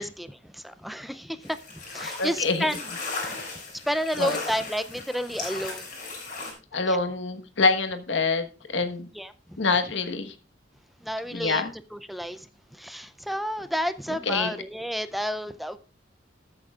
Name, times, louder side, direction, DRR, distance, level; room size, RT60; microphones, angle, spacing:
voice 1, 0.0-2.8 3.9-5.9 6.9-7.0 9.1-9.6 11.0-15.8, equal, ahead, 0.5 m, -31 dB
sound 1, 1.4-6.5, left 3 dB, 45° left, 6.0 m, -37 dB
voice 2, 2.2-2.6 4.2-4.4 6.7-9.1 9.6-10.3 11.3-11.7 14.3-14.5, left 3 dB, 80° left, 1.3 m, -25 dB
19.5 x 8.6 x 2.4 m
head